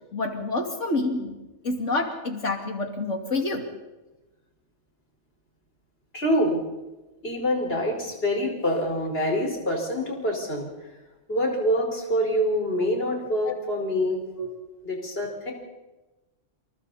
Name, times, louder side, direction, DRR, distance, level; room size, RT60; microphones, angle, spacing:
voice 1, 0.1-1.4 1.6-3.7 13.4-13.5 14.4-14.5, left 2 dB, 75° left, 4 dB, 3.0 m, -28 dB
voice 2, 6.1-6.6 7.2-10.7 11.3-14.2 14.8-15.5, equal, 55° left, 1 dB, 5.1 m, -25 dB
28.0 x 28.0 x 4.2 m, 1.1 s
omnidirectional pair, 1.2 m